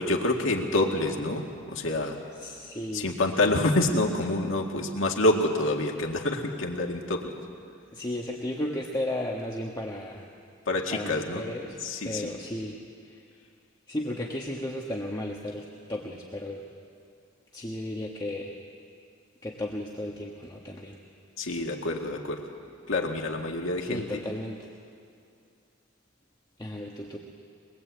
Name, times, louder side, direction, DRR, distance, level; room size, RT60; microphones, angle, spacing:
voice 1, 0.0-1.4 1.7-2.2 2.9-7.3 10.7-11.4 11.8-12.3 21.4-22.4 22.9-24.0, left 2 dB, 80° left, 1 dB, 2.1 m, -27 dB
voice 2, 2.4-3.1 7.9-10.2 10.9-11.8 12.0-13.2 13.9-16.6 17.5-18.5 19.4-21.0 23.8-24.7 26.6-27.2, left 1 dB, 20° left, -1 dB, 1.4 m, -34 dB
23.0 x 21.0 x 8.3 m, 2.4 s
head